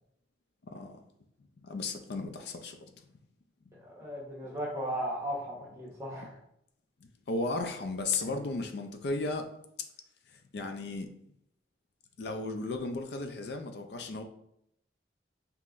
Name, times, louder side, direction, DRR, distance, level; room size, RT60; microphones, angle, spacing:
voice 1, 0.6-1.0 1.6-2.8 7.3-9.5 10.5-11.1 12.2-14.2, left 3 dB, 65° left, 6 dB, 0.4 m, -34 dB
voice 2, 3.7-6.4, equal, 15° right, -4 dB, 1.1 m, -36 dB
5.5 x 2.9 x 2.5 m, 0.75 s
head